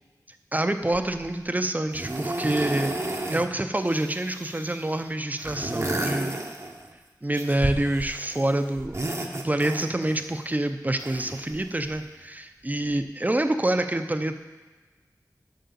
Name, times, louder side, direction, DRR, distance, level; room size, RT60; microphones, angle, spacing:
voice 1, 0.5-6.5 7.2-14.3, right 1 dB, 25° right, 8 dB, 0.6 m, -27 dB
sound 1, 0.9-1.3 1.9-3.5 3.8-4.9 5.4-6.9 7.3-8.4 8.8-10.2 11.0-12.0 12.9-13.0, right 2 dB, 45° right, 0.9 m, -32 dB
7.6 x 5.5 x 7.0 m, 1.3 s
wide cardioid pair, 60°, 7 cm